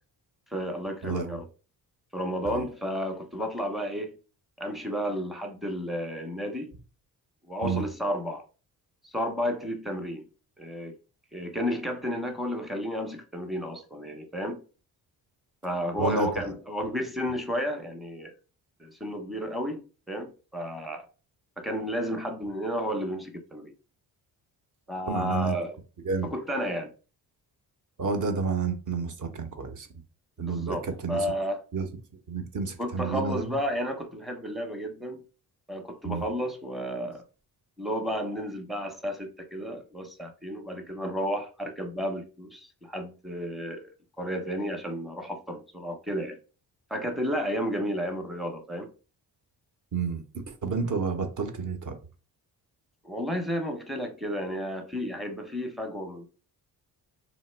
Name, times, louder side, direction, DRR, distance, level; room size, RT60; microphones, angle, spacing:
voice 1, 0.5-1.5 2.1-4.1 4.6-6.7 7.4-8.4 9.0-10.2 10.6-11.0 11.3-14.6 15.6-18.3 18.8-21.0 21.6-23.7 24.9-25.8 26.2-26.9 30.5-31.6 32.8-35.2 35.7-37.2 37.8-43.9 44.2-46.4 46.9-48.9 53.0-56.3, equal, ahead, 0.7 m, -32 dB
voice 2, 1.0-1.4 2.4-2.6 7.6-7.8 16.0-16.5 25.1-25.6 26.0-26.3 28.0-29.9 30.4-31.3 31.7-31.9 32.3-33.4 36.0-36.2 49.9-52.0, right 4 dB, 40° right, 0.7 m, -30 dB
2.9 x 2.1 x 3.2 m
supercardioid pair, 55°, 45 cm